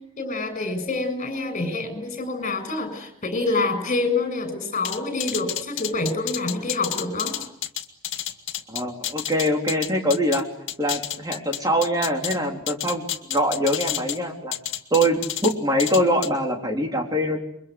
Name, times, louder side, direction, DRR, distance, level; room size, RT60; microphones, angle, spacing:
voice 1, 0.2-7.4, left 3 dB, 35° left, 10 dB, 7.1 m, -27 dB
sound 1, 4.8-10.4 10.7-12.4 12.7-14.2 14.5-15.5 15.8-16.3, left 12 dB, 55° left, 2.1 m, -30 dB
voice 2, 8.7-10.4 10.8-13.0 13.3-14.5 14.9-17.4, equal, 15° right, 2 dB, 4.0 m, -23 dB
29.0 x 24.0 x 8.1 m, 0.76 s
head